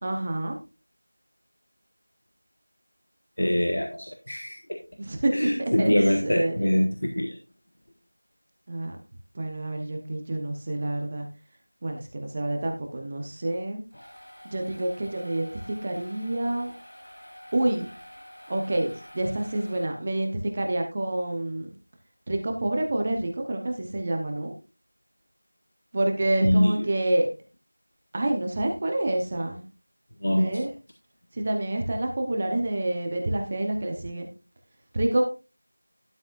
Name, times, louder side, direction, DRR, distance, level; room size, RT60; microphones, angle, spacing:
voice 1, 0.0-0.6 5.0-5.5 5.8-6.7 8.7-9.0 9.3-11.3 11.8-13.8 14.4-16.7 17.5-17.9 18.5-21.7 22.3-24.5 25.9-27.3 28.1-29.7 30.3-30.7 31.3-34.3 34.9-35.2, right 1 dB, 15° right, 3 dB, 0.7 m, -28 dB
voice 2, 3.4-4.8 5.3-7.4 26.4-26.7 30.2-30.7, left 1 dB, 55° left, 4 dB, 1.5 m, -24 dB
sound 1, 13.6-20.3, equal, 85° left, 5.4 m, -47 dB
12.5 x 9.7 x 2.5 m, 0.29 s
figure-of-eight pair, 180°, 0 cm